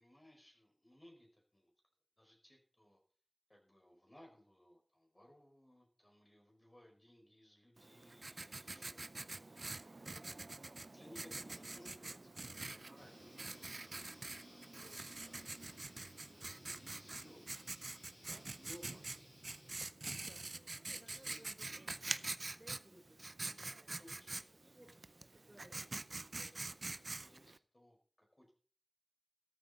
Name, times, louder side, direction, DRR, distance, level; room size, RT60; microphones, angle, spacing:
voice 1, 0.0-1.7 2.2-3.0 3.5-9.0 9.3-10.0 10.7-16.0 16.3-18.0 18.6-19.4 20.8-21.4 23.4-24.9 26.4-26.6 27.1-28.5, left 1 dB, 30° left, 1 dB, 4.7 m, -63 dB
Writing, 7.8-27.6, right 2 dB, 70° right, 0.5 m, -46 dB
voice 2, 8.7-9.2 20.0-21.9 22.5-26.7, right 1 dB, 25° right, 2 dB, 3.6 m, -64 dB
sound 1, 13.0-19.8, left 1 dB, 45° left, 5.6 m, -63 dB
13.5 x 12.0 x 4.1 m, 0.43 s
wide cardioid pair, 55°, 0 cm